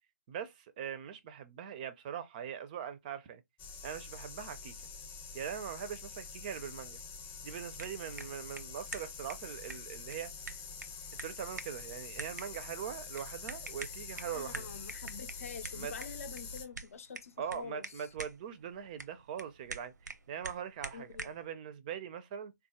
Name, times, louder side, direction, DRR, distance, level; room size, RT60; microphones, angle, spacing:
voice 1, 0.3-3.4 3.8-4.7 5.3-7.0 7.4-10.3 11.2-14.7 15.7-15.9 17.4-22.5, right 8 dB, 30° right, 0.4 m, -41 dB
sound 1, 3.6-16.6, left 5 dB, 20° left, 0.7 m, -46 dB
sound 2, 7.6-21.5, right 3 dB, 90° right, 0.6 m, -48 dB
voice 2, 14.3-18.1 20.9-21.3, left 6 dB, 55° left, 0.6 m, -46 dB
3.5 x 2.3 x 2.8 m
figure-of-eight pair, 145°, 9 cm